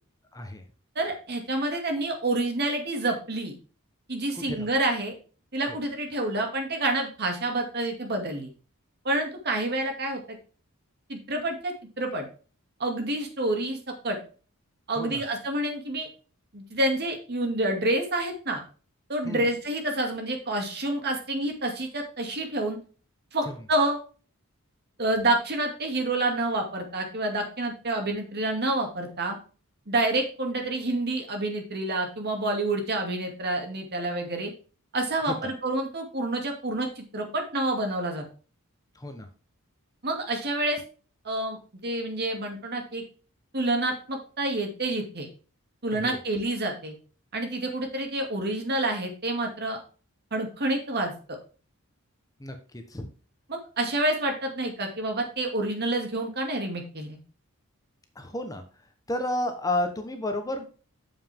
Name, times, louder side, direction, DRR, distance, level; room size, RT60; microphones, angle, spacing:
voice 1, 0.3-0.6 4.3-4.7 5.7-5.8 15.0-15.2 19.2-19.4 23.5-23.6 39.0-39.3 45.9-46.2 52.4-53.1 58.2-58.6 59.1-60.6, left 1 dB, 15° left, 6 dB, 1.0 m, -31 dB
voice 2, 1.0-3.5 4.1-5.1 5.5-8.5 9.0-10.4 11.1-12.3 12.8-13.8 14.0-14.2 14.9-16.1 16.5-18.6 19.1-22.8 23.3-24.0 25.0-29.4 29.9-34.5 34.9-38.2 40.0-40.8 41.2-41.6 41.8-43.0 43.5-45.3 45.8-46.9 47.3-49.8 50.3-51.1 53.5-57.2, right 2 dB, 50° right, 3 dB, 2.4 m, -28 dB
8.6 x 7.3 x 3.5 m, 0.37 s
head